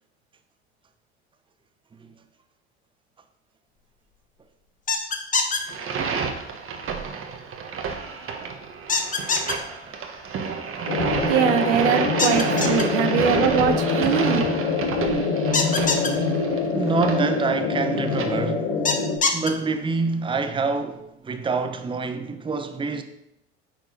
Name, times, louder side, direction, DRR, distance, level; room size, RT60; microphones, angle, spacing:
sound 1, 4.9-5.6 8.9-9.5 12.2-12.8 15.5-16.1 18.9-19.5, left 4 dB, 25° left, 1.1 m, -22 dB
sound 2, 5.6-18.3, right 5 dB, 40° right, 1.3 m, -30 dB
sound 3, 10.9-19.2, left 4 dB, 70° left, 1.5 m, -25 dB
voice 1, 11.3-14.4, right 8 dB, 80° right, 0.9 m, -22 dB
voice 2, 16.7-18.8 19.3-23.0, right 4 dB, 15° right, 0.7 m, -26 dB
8.7 x 4.6 x 4.0 m
hypercardioid pair, 80°, 34 cm